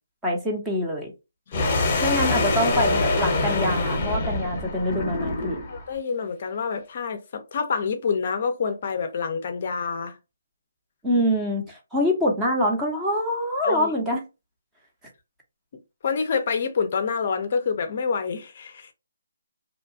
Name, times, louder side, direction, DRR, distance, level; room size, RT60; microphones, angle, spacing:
voice 1, 0.2-1.1 2.0-5.6 11.0-14.2, left 1 dB, 5° right, 0.6 m, -25 dB
voice 2, 1.5-1.9 5.7-10.1 13.6-13.9 16.0-18.9, left 5 dB, 40° left, 0.5 m, -27 dB
sound 1, 1.5-5.8, left 2 dB, 25° left, 0.8 m, -24 dB
2.7 x 2.2 x 2.6 m
hypercardioid pair, 165°, 0 cm